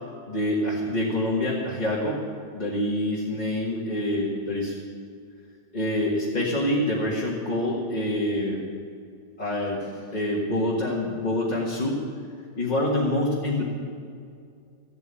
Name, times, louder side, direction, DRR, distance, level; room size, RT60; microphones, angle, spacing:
voice 1, 0.3-2.2 2.5-4.8 5.7-8.6 9.4-12.0 12.6-13.6, left 1 dB, 25° left, -5 dB, 1.7 m, -26 dB
14.0 x 7.8 x 9.0 m, 2.3 s
omnidirectional pair, 1.8 m